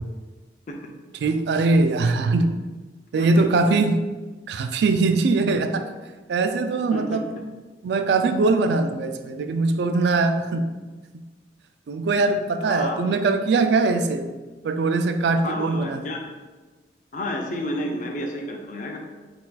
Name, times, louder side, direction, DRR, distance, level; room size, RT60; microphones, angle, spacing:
voice 1, 1.2-2.6 3.1-4.0 4.5-5.9 6.3-7.4 7.8-10.7 11.1-11.2 11.9-14.3 14.6-16.0, right 3 dB, 70° right, 9 dB, 0.3 m, -21 dB
voice 2, 12.6-13.0 15.4-16.2 17.1-19.0, left 1 dB, 45° left, 2 dB, 0.4 m, -30 dB
4.1 x 2.3 x 4.0 m, 1.3 s
head